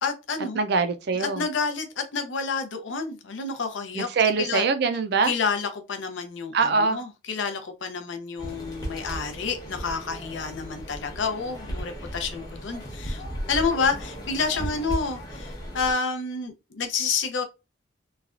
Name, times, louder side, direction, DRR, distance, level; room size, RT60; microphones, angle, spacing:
voice 1, 0.0-0.6 1.2-4.1 4.4-4.7 5.2-13.2 13.5-17.4, left 5 dB, 70° left, 0.6 m, -29 dB
voice 2, 0.5-1.4 3.9-5.3 6.5-7.0, right 4 dB, 55° right, 0.4 m, -23 dB
sound 1, 8.4-15.9, equal, 20° left, 0.9 m, -36 dB
3.1 x 2.3 x 2.4 m
head